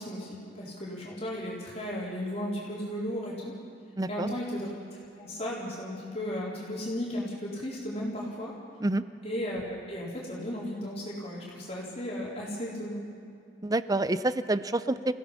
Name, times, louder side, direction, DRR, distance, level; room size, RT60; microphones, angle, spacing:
voice 1, 0.0-3.5 4.1-4.7 5.2-8.5 9.2-13.0, equal, 35° left, -6 dB, 4.1 m, -35 dB
voice 2, 4.0-4.4 8.8-9.0 13.6-15.1, right 2 dB, 20° right, 13 dB, 0.6 m, -28 dB
29.0 x 16.0 x 5.8 m, 2.5 s
head